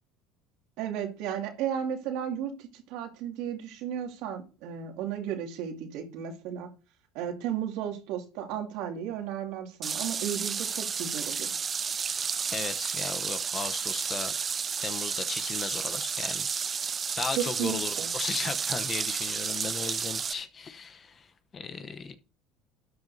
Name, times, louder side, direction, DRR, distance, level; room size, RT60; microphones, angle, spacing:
voice 1, 0.8-6.7 7.1-11.6 17.4-18.1, right 9 dB, 70° right, 2.3 m, -34 dB
sound 1, 9.8-20.3, right 6 dB, 30° right, 0.4 m, -32 dB
voice 2, 12.5-14.3 14.8-16.7 17.2-22.2, left 5 dB, 30° left, 0.9 m, -36 dB
12.5 x 9.2 x 2.7 m
supercardioid pair, 115°, 0 cm